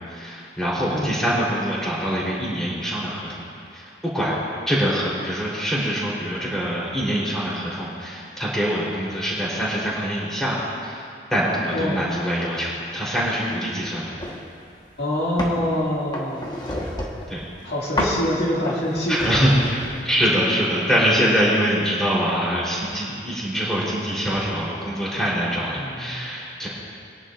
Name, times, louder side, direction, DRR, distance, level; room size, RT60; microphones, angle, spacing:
voice 1, 0.0-3.5 3.7-4.4 4.7-11.0 11.3-14.1 17.3-17.5 19.1-26.7, equal, 5° left, -7 dB, 3.5 m, -24 dB
voice 2, 11.7-12.1 15.0-16.8 17.6-19.1 25.8-26.3, left 1 dB, 70° left, -6 dB, 2.3 m, -25 dB
sound 1, 14.2-14.4 14.9-15.6 16.1-17.3 18.0-18.3 18.7-20.0, left 1 dB, 25° left, 1.3 m, -29 dB
22.5 x 11.0 x 2.5 m, 2.4 s
head